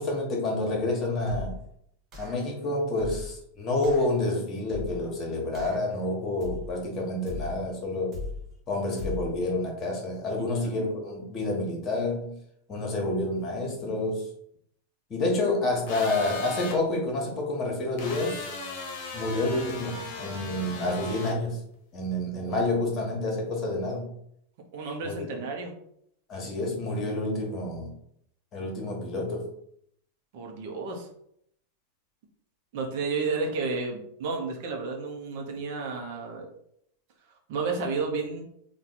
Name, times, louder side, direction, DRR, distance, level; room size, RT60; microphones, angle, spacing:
voice 1, 0.0-1.6 2.2-8.2 8.7-12.3 12.7-14.3 15.1-18.5 19.1-21.6 21.9-24.1 25.0-25.4 26.3-27.9 28.5-29.5, left 2 dB, 30° left, 0 dB, 1.3 m, -29 dB
sound 1, 1.3-1.7 2.1-2.5 3.0-3.4 3.8-4.1 4.7-5.1 5.5-5.9 6.4-6.8 7.3-7.7 8.1-8.5 9.0-9.4, left 4 dB, 30° right, 1.2 m, -38 dB
voice 2, 10.4-10.7 22.4-22.6 24.7-25.7 30.3-31.1 32.7-36.5 37.5-38.4, right 4 dB, 50° right, 2 dB, 0.8 m, -32 dB
sound 2, 15.9-16.8 18.0-21.3, left 3 dB, 45° left, 1.0 m, -37 dB
4.1 x 2.4 x 4.0 m, 0.71 s
figure-of-eight pair, 90°, 0 cm